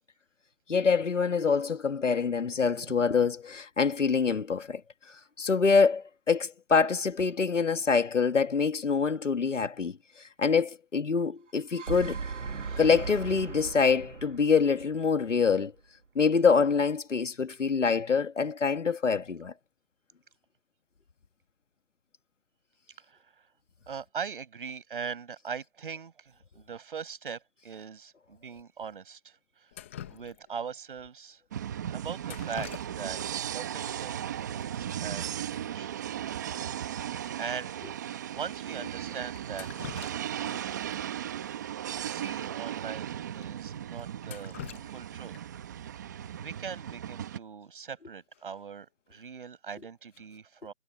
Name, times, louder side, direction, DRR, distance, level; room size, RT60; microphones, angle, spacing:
voice 1, 0.7-4.8 5.4-9.9 10.4-12.2 12.8-15.7 16.2-19.5, left 5 dB, 80° left, 2.0 m, -25 dB
sound 1, 11.5-15.7, right 5 dB, 80° right, 2.4 m, -38 dB
voice 2, 23.1-23.4 23.9-29.7 30.1-31.4 31.9-36.0 36.9-37.1 37.4-37.8 38.3-39.9 40.3-41.0 42.0-44.6 44.8-45.4 46.4-50.7, right 6 dB, 45° right, 7.4 m, -41 dB
Drip, 29.7-30.7 32.2-33.3 33.6-33.7 34.6-34.7 35.0-35.2 35.5-35.6 36.1-36.2 36.6-36.7 37.3-37.4 38.1-38.2 39.3-40.6 40.9-41.0 42.3-42.4 42.9-43.0 43.4-43.5 44.0-45.6 47.6-47.9 48.3-48.7, left 10 dB, 10° left, 1.1 m, -45 dB
sound 2, 31.5-47.4, right 10 dB, 15° right, 1.2 m, -36 dB
hypercardioid pair, 170°, 36 cm